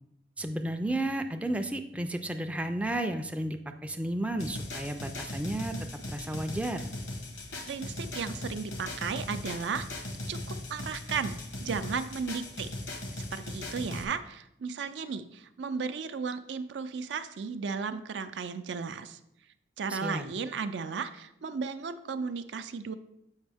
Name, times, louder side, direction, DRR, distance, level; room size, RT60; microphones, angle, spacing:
voice 1, 0.4-5.7 6.1-6.9 19.9-20.3, right 1 dB, 5° right, 5 dB, 0.3 m, -33 dB
sound 1, 4.4-14.0, left 1 dB, 80° left, 1.0 m, -39 dB
voice 2, 7.7-9.9 10.3-12.8 13.1-19.2 19.8-22.9, right 5 dB, 75° right, 10 dB, 0.4 m, -35 dB
7.2 x 5.2 x 3.4 m, 0.78 s
head